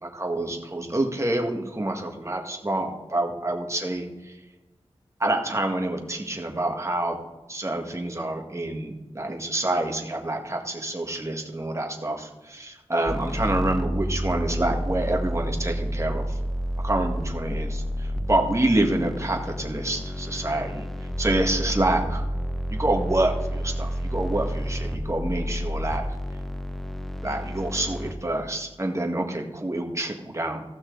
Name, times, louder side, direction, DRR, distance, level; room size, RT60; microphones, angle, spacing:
voice 1, 0.0-4.4 5.2-7.2 7.5-16.4 16.8-20.8 21.2-22.2 22.7-26.0 27.2-30.6, right 1 dB, 30° right, 2 dB, 1.8 m, -27 dB
sound 1, 13.1-28.1, equal, ahead, 0.8 m, -30 dB
15.5 x 6.1 x 3.9 m, 1.1 s
wide cardioid pair, 55°, 11 cm